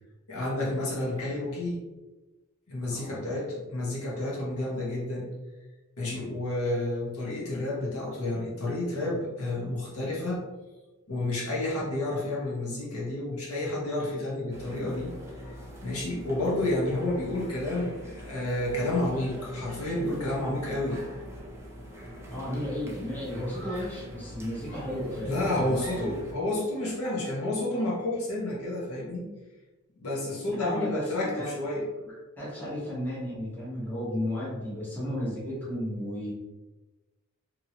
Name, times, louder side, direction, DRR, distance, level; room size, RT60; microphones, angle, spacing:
voice 1, 0.3-1.8 2.7-5.3 6.0-10.4 11.1-15.1 15.8-21.0 25.2-29.3 30.0-31.8, left 1 dB, 65° left, -5 dB, 1.0 m, -30 dB
voice 2, 2.9-3.4 6.1-6.3 22.3-26.1 30.4-31.6 32.0-36.3, equal, 10° left, -8 dB, 0.9 m, -34 dB
sound 1, 14.5-26.3, equal, 10° right, 0.5 m, -44 dB
Screaming, 23.5-24.1 24.7-26.4, right 2 dB, 85° left, 1.4 m, -49 dB
2.9 x 2.7 x 2.7 m, 1.1 s
head